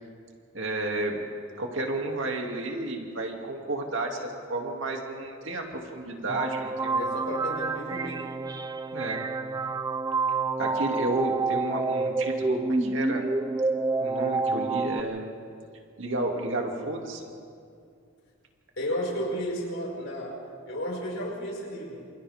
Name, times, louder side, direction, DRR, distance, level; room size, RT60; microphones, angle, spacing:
voice 1, 0.5-1.2 1.6-7.1 8.9-9.2 10.6-13.3 14.0-15.3 16.0-17.3, right 2 dB, 65° right, 1 dB, 2.7 m, -32 dB
sound 1, 6.3-15.0, right 3 dB, 15° right, 0.5 m, -28 dB
voice 2, 6.9-8.3 18.8-22.1, equal, 70° left, -3 dB, 5.9 m, -33 dB
28.0 x 28.0 x 3.7 m, 2.3 s
head